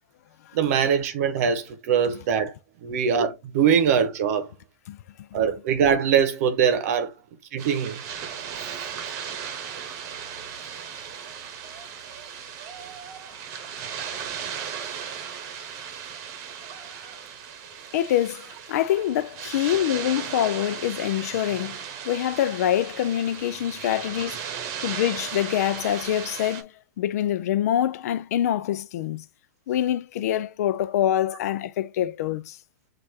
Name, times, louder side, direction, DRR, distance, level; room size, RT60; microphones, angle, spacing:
voice 1, 0.5-2.5 2.8-4.5 5.3-7.1 7.5-8.0, right 7 dB, 60° right, 0.8 m, -22 dB
sound 1, 7.6-26.6, right 7 dB, 40° right, 1.0 m, -36 dB
voice 2, 17.9-24.4 24.8-26.7 27.0-29.2 29.7-32.6, left 11 dB, 65° left, 0.5 m, -25 dB
6.3 x 2.5 x 2.7 m
hypercardioid pair, 115°, 9 cm